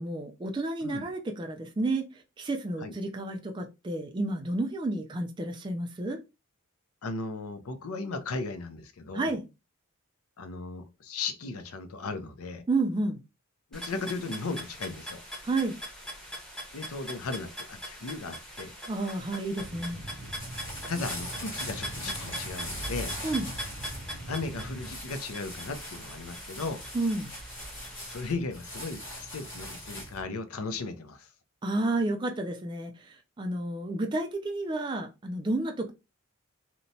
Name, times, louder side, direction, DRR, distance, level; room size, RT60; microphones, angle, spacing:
voice 1, 0.0-2.0 2.4-6.2 9.1-9.4 12.7-13.2 15.4-15.7 18.9-20.0 23.2-23.5 26.9-27.3 31.6-35.9, right 2 dB, 20° right, 0.3 m, -31 dB
voice 2, 7.0-9.4 10.4-12.6 13.7-15.2 16.7-18.7 20.9-23.1 24.3-26.8 28.1-31.3, left 3 dB, 80° left, 0.5 m, -36 dB
sound 1, 13.7-28.3, equal, 5° left, 0.7 m, -42 dB
sound 2, 19.6-24.9, right 1 dB, 90° right, 0.6 m, -43 dB
sound 3, 20.0-30.2, equal, 60° left, 1.5 m, -41 dB
2.9 x 2.1 x 2.6 m
head